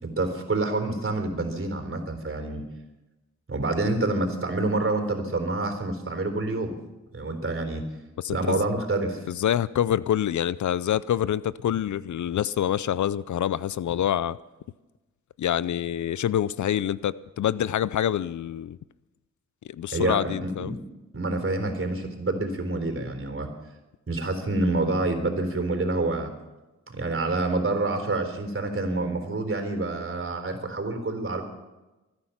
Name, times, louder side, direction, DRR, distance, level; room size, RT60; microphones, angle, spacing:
voice 1, 0.0-2.6 3.5-6.8 7.1-7.8 8.3-9.3 19.9-20.8 21.1-23.5 24.1-26.3 26.9-31.4, right 2 dB, 45° right, 6 dB, 4.0 m, -27 dB
voice 2, 8.2-8.6 9.3-14.4 15.4-18.8 19.6-20.7, left 10 dB, 70° left, 18 dB, 0.5 m, -26 dB
25.0 x 9.9 x 5.8 m, 1.1 s
cardioid pair, 50°, 30 cm